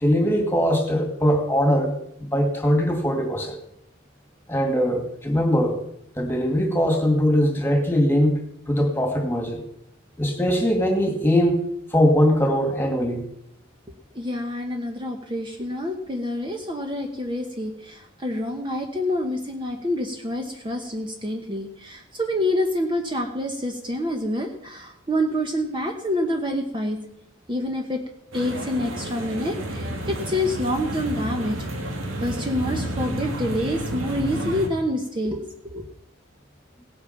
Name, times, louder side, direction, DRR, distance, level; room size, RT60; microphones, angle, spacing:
voice 1, 0.0-1.9 2.3-3.6 4.5-5.8 6.2-9.6 10.2-11.6 11.9-13.3, equal, 10° left, 4 dB, 2.1 m, -21 dB
voice 2, 14.1-27.0 27.5-28.0 28.3-35.8, left 1 dB, 25° right, 3 dB, 1.1 m, -27 dB
sound 1, 28.3-34.7, right 1 dB, 85° right, 2.3 m, -31 dB
17.0 x 8.6 x 5.8 m, 0.74 s
head